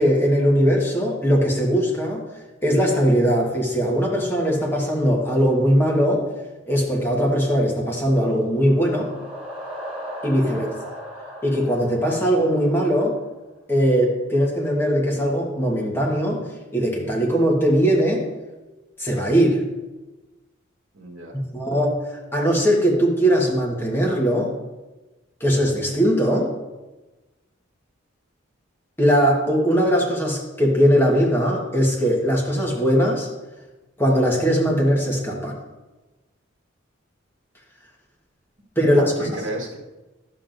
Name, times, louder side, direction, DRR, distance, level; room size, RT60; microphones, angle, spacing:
voice 1, 0.0-2.3 2.6-6.3 6.7-9.1 10.2-11.0 11.4-13.2 13.7-16.5 16.7-18.2 19.0-19.6 21.3-21.9 22.3-24.5 25.4-26.5 29.0-33.3 34.0-35.6 38.8-39.3, equal, 10° left, -2 dB, 1.2 m, -20 dB
sound 1, 8.4-13.2, equal, 5° right, 2.9 m, -37 dB
voice 2, 20.9-21.3 38.8-39.8, right 1 dB, 70° right, -1 dB, 1.5 m, -32 dB
11.0 x 7.3 x 2.6 m, 1.1 s
head